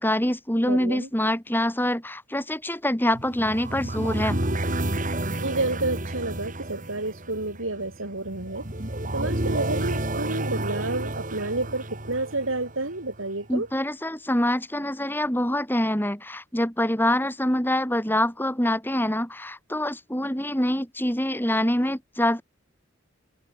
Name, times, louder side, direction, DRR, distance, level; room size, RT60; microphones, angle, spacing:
voice 1, 0.0-4.4 13.5-22.4, left 1 dB, 10° left, 5.3 m, -25 dB
voice 2, 0.7-1.1 5.4-8.6 9.1-13.7, right 2 dB, 75° right, 3.8 m, -30 dB
sound 1, 3.1-13.2, right 1 dB, 40° right, 2.8 m, -30 dB
head